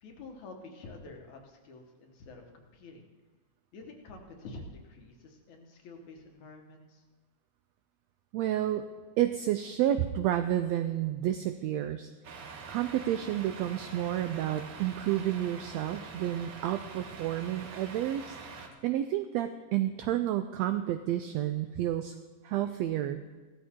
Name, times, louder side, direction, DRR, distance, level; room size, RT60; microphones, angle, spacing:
voice 1, 0.0-3.1 3.7-7.0, left 3 dB, 70° left, 2 dB, 2.8 m, -48 dB
voice 2, 8.3-8.9 9.2-12.1 12.7-18.4 18.8-22.1 22.4-23.2, right 12 dB, 85° right, 9 dB, 1.5 m, -30 dB
Truck, 12.2-18.7, right 4 dB, 55° right, 1.7 m, -45 dB
16.0 x 13.0 x 3.7 m, 1.3 s
omnidirectional pair, 3.6 m